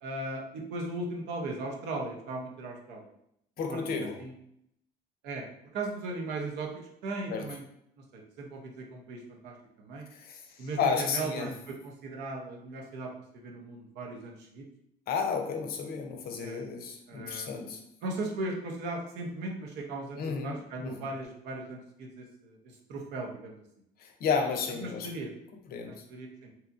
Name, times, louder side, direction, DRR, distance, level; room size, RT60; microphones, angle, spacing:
voice 1, 0.0-3.0 3.7-4.3 5.2-5.5 5.7-6.7 7.0-7.6 8.1-10.1 10.6-13.1 13.4-14.6 16.4-16.6 17.1-22.6 22.9-23.6 24.8-25.3 25.8-26.5, right 2 dB, 85° right, 1 dB, 0.7 m, -38 dB
voice 2, 3.6-4.2 7.3-7.5 10.1-11.5 15.1-17.8 20.1-21.1 24.0-25.1 25.7-26.0, left 5 dB, 65° left, 4 dB, 0.5 m, -32 dB
2.8 x 2.4 x 2.4 m, 0.75 s
cardioid pair, 110°, 17 cm